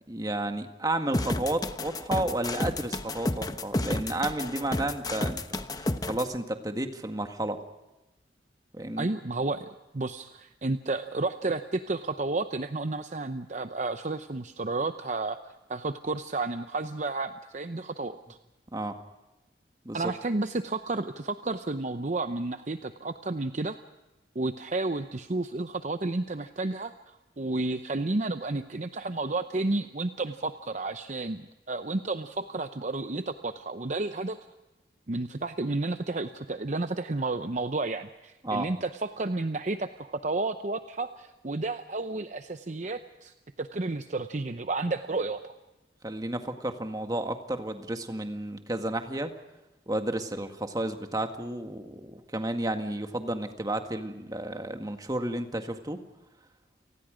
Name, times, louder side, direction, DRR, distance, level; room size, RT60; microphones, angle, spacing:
voice 1, 0.1-7.6 8.7-9.1 18.7-18.9 19.8-20.1 38.4-38.7 46.0-49.3 49.9-56.0, right 1 dB, 20° right, 6 dB, 1.8 m, -32 dB
sound 1, 1.1-6.2, left 1 dB, 20° left, 1.0 m, -31 dB
voice 2, 9.0-18.4 19.9-23.8 24.3-34.4 35.1-45.5, right 2 dB, 45° right, 9 dB, 0.7 m, -31 dB
29.5 x 19.5 x 5.1 m, 1.0 s
head